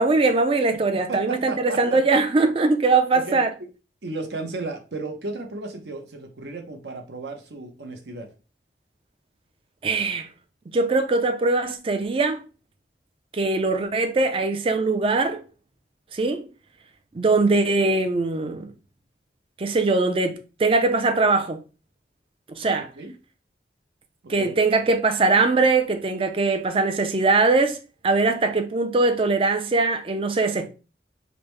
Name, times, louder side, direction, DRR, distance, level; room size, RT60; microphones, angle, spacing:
voice 1, 0.0-3.5 9.8-10.3 10.7-12.4 13.3-15.4 16.1-16.5 17.1-18.7 19.6-21.6 22.5-22.9 24.3-27.8 28.0-30.7, right 3 dB, 30° right, 0.4 m, -21 dB
voice 2, 0.9-2.0 3.1-3.7 4.0-8.3 22.6-23.1 24.2-24.6, right 3 dB, 70° right, 0.7 m, -34 dB
5.0 x 2.1 x 3.1 m
head